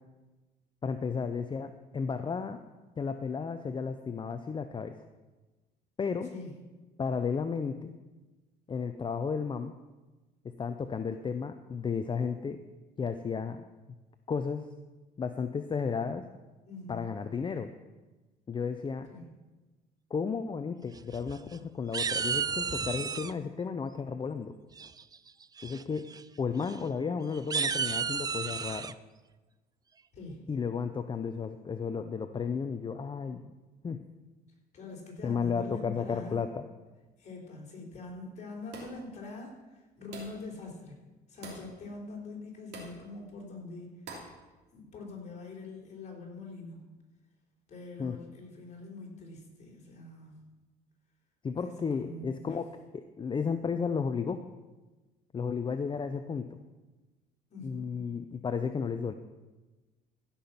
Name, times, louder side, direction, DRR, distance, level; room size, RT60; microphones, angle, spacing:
voice 1, 0.8-2.6 3.0-4.9 6.0-6.3 7.0-7.9 8.7-9.8 10.6-12.6 13.0-13.7 14.3-14.7 15.2-16.2 16.9-17.7 18.5-19.1 20.1-24.5 25.6-26.0 26.4-29.0 30.5-33.5 33.8-34.0 35.2-36.6 48.0-48.2 51.4-52.7 52.9-54.5 55.3-56.6 57.6-59.1, left 5 dB, 30° left, 8 dB, 0.6 m, -33 dB
voice 2, 16.7-17.1 19.1-19.3 30.1-30.5 34.7-36.5 37.2-41.0 41.3-44.0 44.7-46.8 47.7-50.4 51.6-52.6 57.5-57.9, left 3 dB, 45° left, -1 dB, 4.1 m, -44 dB
sound 1, 21.0-21.6 21.9-23.3 24.8-25.2 25.6-25.8 26.1-26.2 26.6-26.7 27.3-28.9, right 6 dB, 20° right, 0.4 m, -32 dB
sound 2, 38.7-39.1 40.1-40.5 41.4-41.7 42.7-43.0 44.1-44.4, right 3 dB, 85° right, 3.0 m, -45 dB
15.5 x 5.9 x 7.1 m, 1.2 s
cardioid pair, 110°, 17 cm